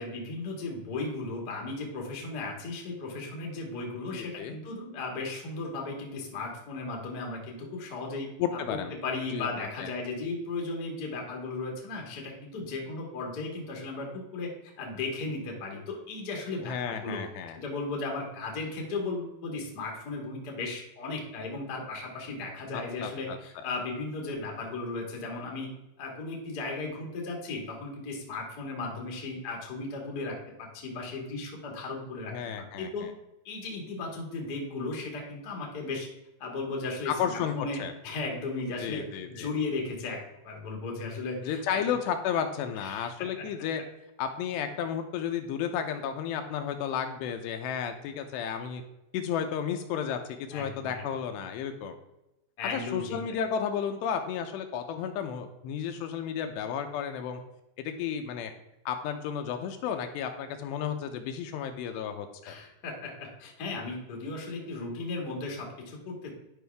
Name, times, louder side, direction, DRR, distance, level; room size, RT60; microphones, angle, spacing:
voice 1, 0.0-8.3 8.7-14.5 14.8-17.2 17.5-25.7 26.0-33.1 33.4-36.1 36.4-39.0 39.3-41.9 42.7-43.5 50.5-51.0 52.6-53.2 62.4-66.3, left 3 dB, 55° left, -1 dB, 1.0 m, -36 dB
voice 2, 4.1-4.6 8.4-8.9 9.3-9.5 9.8-9.9 16.7-17.6 22.7-23.4 32.3-33.1 37.1-37.9 38.8-39.5 41.5-43.8 44.2-48.8 49.1-51.9 52.7-57.4 57.8-58.5 58.9-62.5, left 8 dB, 80° left, 6 dB, 2.7 m, -33 dB
11.0 x 5.3 x 3.4 m, 0.91 s
omnidirectional pair, 5.1 m